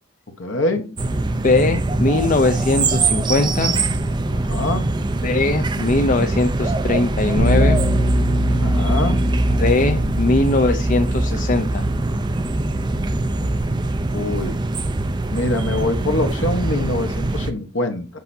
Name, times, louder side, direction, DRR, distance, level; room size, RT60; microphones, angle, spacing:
voice 1, 0.4-0.9 4.3-4.9 8.6-9.2 14.1-14.6 15.3-18.1, left 2 dB, 65° left, 6 dB, 1.1 m, -24 dB
sound 1, 1.0-17.5, right 2 dB, 20° right, 0.4 m, -23 dB
voice 2, 1.3-3.7 5.2-7.8 9.6-11.8, left 2 dB, 40° left, 6 dB, 0.4 m, -20 dB
Bass guitar, 7.4-13.6, equal, 85° right, 1.3 m, -23 dB
8.1 x 5.5 x 2.7 m, 0.34 s
head